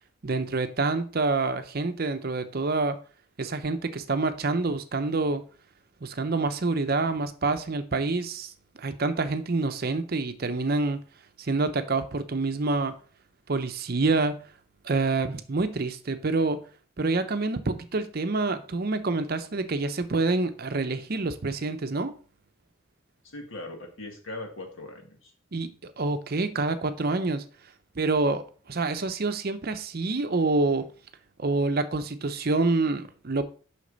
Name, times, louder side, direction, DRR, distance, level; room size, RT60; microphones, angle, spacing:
voice 1, 0.2-3.0 3.4-5.4 6.0-11.0 11.4-12.9 13.5-14.4 14.8-16.6 17.0-22.1 25.5-27.4 28.0-30.9 31.4-33.4, right 3 dB, 45° right, 0.6 m, -27 dB
voice 2, 23.2-25.3, left 2 dB, 70° left, 1.8 m, -40 dB
6.4 x 5.9 x 4.0 m
head